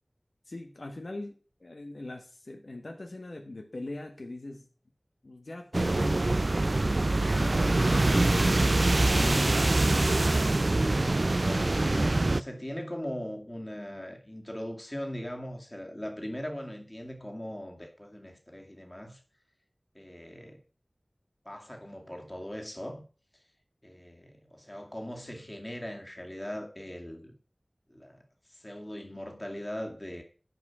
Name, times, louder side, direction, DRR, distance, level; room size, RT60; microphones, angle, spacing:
voice 1, 0.5-1.3 1.6-4.7 5.2-6.3 7.3-9.7, left 2 dB, 80° left, 1.3 m, -40 dB
sound 1, 5.7-12.4, right 2 dB, 65° right, 0.4 m, -24 dB
voice 2, 11.4-19.2 19.9-20.6 21.4-23.0 23.8-27.3 27.9-28.2 28.5-30.2, equal, 25° left, 2.3 m, -40 dB
9.3 x 5.5 x 6.0 m
wide cardioid pair, 40°, 0 cm